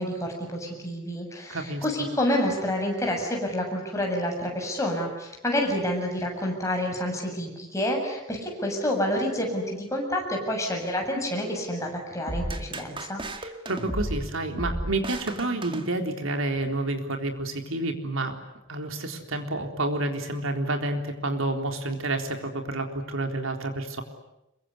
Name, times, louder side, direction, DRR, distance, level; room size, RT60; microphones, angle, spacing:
voice 1, 0.0-13.2, left 1 dB, 15° left, 1 dB, 7.4 m, -28 dB
voice 2, 1.5-1.8 13.4-18.4 18.7-24.0, right 2 dB, 85° right, 5 dB, 3.9 m, -29 dB
sound 1, 12.3-16.4, right 1 dB, 25° right, 2.1 m, -34 dB
26.5 x 23.0 x 9.7 m, 0.87 s
head